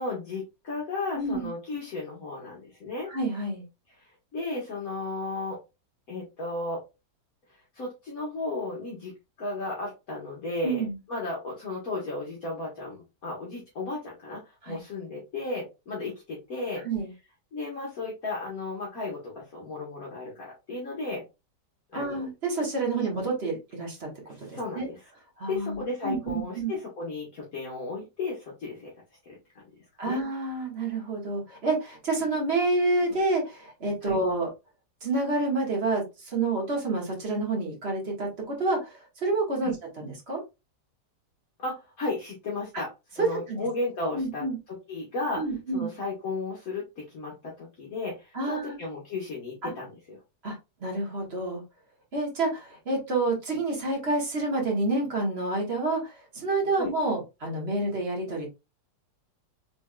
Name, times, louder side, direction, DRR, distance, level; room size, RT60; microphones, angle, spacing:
voice 1, 0.0-3.1 4.0-5.6 6.1-6.8 7.7-9.1 9.4-16.8 17.5-21.2 21.9-22.3 23.0-23.1 24.3-25.0 25.5-28.9 29.2-29.4 30.0-30.2 34.0-34.2 39.6-39.7 41.6-42.9 43.2-45.4 45.7-50.2 56.8-56.9, left 2 dB, 55° left, -3 dB, 1.5 m, -34 dB
voice 2, 1.1-1.5 3.1-3.6 10.6-11.0 14.6-14.8 16.8-17.1 21.9-24.9 25.4-26.7 30.0-34.5 35.0-40.4 42.7-42.8 43.2-43.6 44.1-44.6 45.3-45.9 48.3-48.8 49.6-49.7 50.4-50.5 50.8-51.6 52.1-58.5, right 2 dB, 40° right, -1 dB, 1.6 m, -28 dB
4.2 x 3.4 x 2.2 m, 0.25 s
omnidirectional pair, 1.8 m